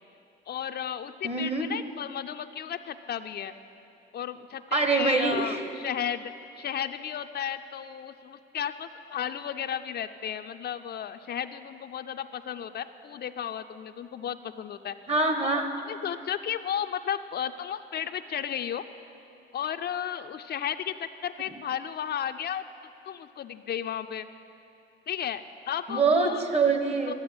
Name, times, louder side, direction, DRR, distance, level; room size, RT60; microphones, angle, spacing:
voice 1, 0.5-3.5 4.1-15.0 15.5-15.6 15.9-18.8 19.5-22.6 23.1-24.3 25.1-25.4 25.7-26.4 27.1-27.2, left 9 dB, 55° left, 8 dB, 0.5 m, -34 dB
voice 2, 1.2-1.7 4.7-5.6 15.1-15.7 25.9-27.1, right 4 dB, 30° right, 6 dB, 1.3 m, -24 dB
12.5 x 7.9 x 8.8 m, 2.7 s
cardioid pair, 90°, 20 cm